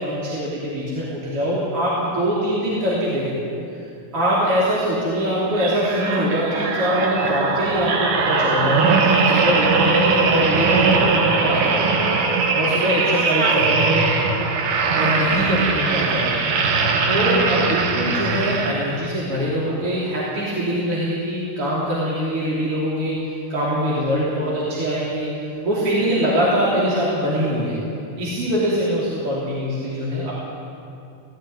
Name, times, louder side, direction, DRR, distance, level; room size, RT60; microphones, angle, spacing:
voice 1, 0.0-3.4 4.1-14.1 14.9-16.4 16.7-25.3 25.6-27.8 28.2-30.3, equal, 40° right, -7 dB, 4.0 m, -23 dB
sound 1, 5.5-19.1 19.7-19.8, right 4 dB, 70° right, 3.1 m, -20 dB
18.0 x 17.0 x 9.4 m, 2.7 s
omnidirectional pair, 3.9 m